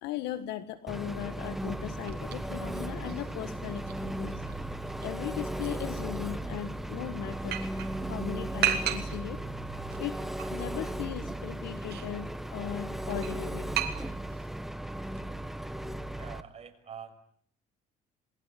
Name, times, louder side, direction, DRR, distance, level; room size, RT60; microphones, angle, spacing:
voice 1, 0.0-4.4 5.0-7.6 8.1-9.4 10.0-10.2 10.5-13.7, left 12 dB, 85° left, 13 dB, 1.7 m, -38 dB
Engine, 0.9-16.4, right 1 dB, ahead, 1.4 m, -36 dB
sound 1, 1.6-14.6, right 10 dB, 70° right, 3.2 m, -38 dB
sound 2, 1.9-10.0, right 14 dB, 90° right, 2.0 m, -51 dB
voice 2, 16.1-17.2, right 8 dB, 40° right, 5 dB, 6.2 m, -45 dB
27.0 x 22.0 x 10.0 m, 0.63 s
cardioid pair, 110°, 17 cm